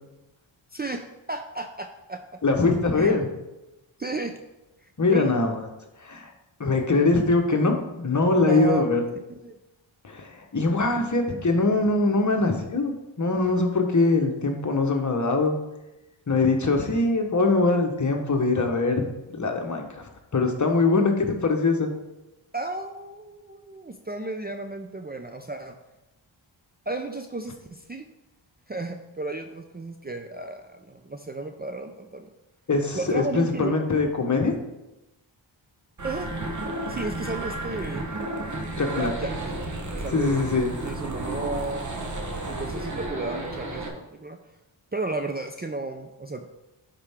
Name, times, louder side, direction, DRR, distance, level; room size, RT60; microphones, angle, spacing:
voice 1, 0.7-2.4 3.0-3.1 4.0-4.4 4.8-5.3 8.4-8.8 9.4-9.6 22.5-25.8 26.9-28.0 28.7-32.3 32.9-33.7 36.0-36.3 36.9-38.1 38.8-39.4 39.9-40.4 40.8-41.9 42.5-44.4 44.9-46.5, right 3 dB, 20° right, 5 dB, 0.5 m, -33 dB
voice 2, 2.4-3.3 5.0-5.6 6.0-6.3 6.6-9.0 10.0-15.6 16.3-19.0 19.3-21.9 32.7-34.5 38.8-39.1 40.1-40.7, left 3 dB, 35° left, 3 dB, 1.2 m, -22 dB
sound 1, 36.0-43.9, right 2 dB, 35° right, 1.3 m, -32 dB
9.9 x 4.5 x 3.6 m, 0.97 s
cardioid pair, 70°, 49 cm